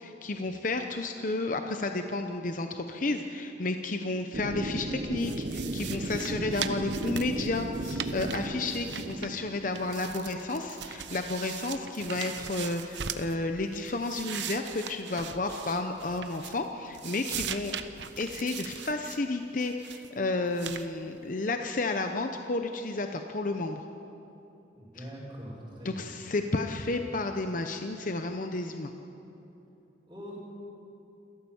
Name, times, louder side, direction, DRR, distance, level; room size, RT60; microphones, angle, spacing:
voice 1, 0.0-17.8 18.2-23.8 25.0-25.1 25.8-28.9, left 2 dB, 45° left, 6 dB, 0.8 m, -32 dB
sound 1, 4.3-10.3, right 1 dB, 50° right, 0.9 m, -35 dB
sound 2, 5.2-9.5 9.7-13.3 13.7-16.7 16.9-19.2 19.6-20.1 20.6-20.9, right 8 dB, 80° right, 0.9 m, -40 dB
voice 2, 24.7-26.1 30.1-30.4, equal, 20° right, -8 dB, 4.3 m, -42 dB
28.0 x 13.5 x 7.2 m, 2.9 s
head